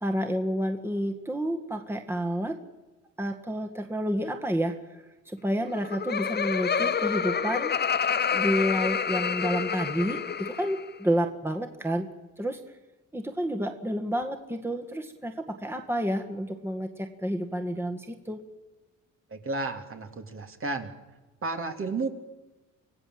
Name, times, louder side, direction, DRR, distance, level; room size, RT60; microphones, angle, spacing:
voice 1, 0.0-2.6 3.2-7.7 8.3-12.1 12.4-12.7 13.1-18.4, equal, 10° right, 5 dB, 1.9 m, -30 dB
Laughter, 5.6-10.8, left 7 dB, 35° left, 0.9 m, -28 dB
voice 2, 19.3-20.9 21.4-22.1, right 3 dB, 45° right, 5 dB, 2.8 m, -32 dB
26.0 x 16.5 x 7.7 m, 1.1 s
cardioid pair, 90°, 30 cm